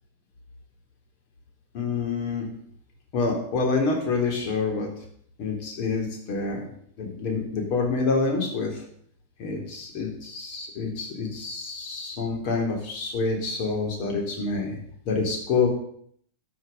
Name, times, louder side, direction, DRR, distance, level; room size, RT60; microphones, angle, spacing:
voice 1, 1.7-2.5 3.1-4.9 5.4-6.7 7.0-8.8 9.4-14.7 15.1-15.7, left 4 dB, 45° left, 1 dB, 3.7 m, -27 dB
12.5 x 6.7 x 6.8 m, 0.65 s
figure-of-eight pair, 90°, 0 cm